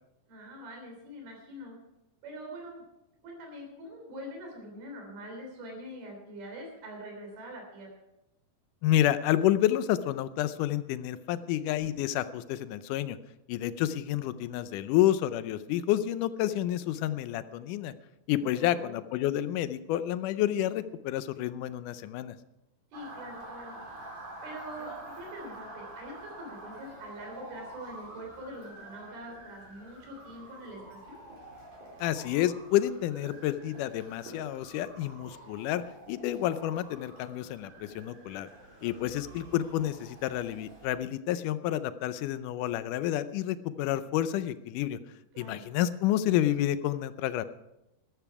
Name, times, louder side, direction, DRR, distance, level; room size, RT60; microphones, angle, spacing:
voice 1, 0.3-1.8 2.2-2.8 3.2-7.9 18.4-18.9 22.9-24.0 24.4-31.2 38.8-39.1 45.3-45.7, equal, 90° right, 1 dB, 5.3 m, -44 dB
voice 2, 8.8-13.2 13.5-17.9 18.3-22.4 32.0-35.8 36.1-38.5 38.8-45.0 45.4-47.4, left 12 dB, 80° left, 13 dB, 1.9 m, -29 dB
Motor vehicle (road) / Siren, 22.9-40.9, right 2 dB, 55° right, 5.5 m, -48 dB
14.5 x 12.5 x 4.8 m, 0.89 s
omnidirectional pair, 4.2 m